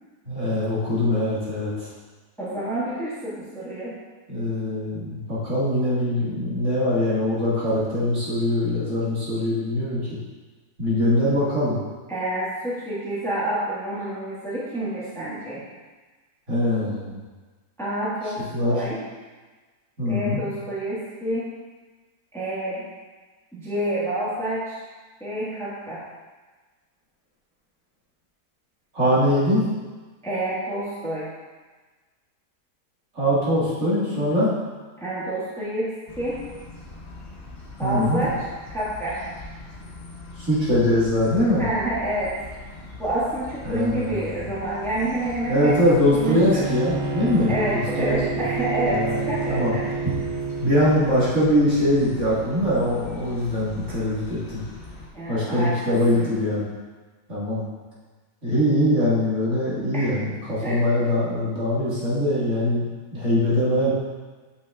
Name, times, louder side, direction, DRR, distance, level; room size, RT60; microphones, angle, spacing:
voice 1, 0.3-1.9 4.3-10.2 10.8-11.8 16.5-17.2 18.2-18.8 20.0-20.5 28.9-29.7 33.1-34.6 37.8-38.3 40.4-41.6 43.6-44.3 45.5-48.2 48.9-49.7 50.6-54.6 55.3-56.7 57.3-57.6 58.4-63.9, left 1 dB, 50° right, -9 dB, 2.1 m, -22 dB
voice 2, 2.4-4.0 12.1-15.6 17.8-19.0 20.0-21.5 22.3-22.8 23.5-24.8 25.2-26.0 30.2-31.3 35.0-36.4 37.8-38.3 38.7-39.2 41.6-42.5 43.0-45.7 46.1-46.6 47.5-49.9 55.1-56.3 59.9-60.2 60.6-60.8, right 1 dB, ahead, -9 dB, 1.4 m, -28 dB
sound 1, 36.1-55.1, left 3 dB, 45° left, 0.8 m, -41 dB
Bowed string instrument, 46.2-50.7, right 4 dB, 65° right, 0.8 m, -29 dB
7.0 x 5.9 x 2.4 m, 1.3 s
omnidirectional pair, 1.7 m